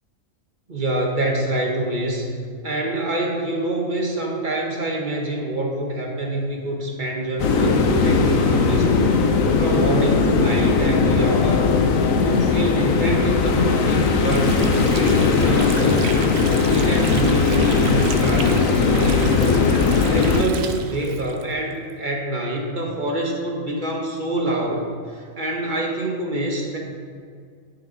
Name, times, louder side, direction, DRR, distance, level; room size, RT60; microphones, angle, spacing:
voice 1, 0.7-2.4 2.6-9.1 9.6-11.8 12.2-26.8, right 2 dB, 40° right, 0 dB, 1.2 m, -26 dB
sound 1, 7.4-20.4, left 4 dB, 75° left, 1.1 m, -18 dB
Water / Sink (filling or washing), 13.4-22.0, right 6 dB, 60° right, 0.8 m, -35 dB
10.5 x 6.0 x 3.9 m, 2.1 s
omnidirectional pair, 1.4 m